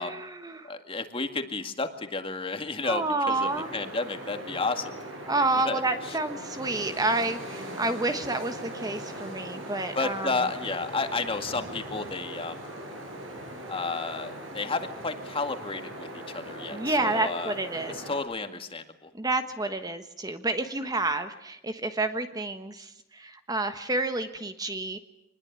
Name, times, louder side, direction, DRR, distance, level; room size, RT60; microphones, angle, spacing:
voice 1, 0.0-0.7 2.8-3.7 5.3-10.3 16.7-18.0 19.1-25.0, right 2 dB, 20° right, 8 dB, 1.2 m, -29 dB
voice 2, 0.6-4.9 5.7-5.8 9.9-12.6 13.7-17.5 18.1-19.1, left 3 dB, 30° left, 7 dB, 2.0 m, -32 dB
Wind, 3.3-18.2, right 1 dB, 80° right, 7.5 m, -40 dB
25.0 x 20.5 x 9.6 m, 0.83 s
head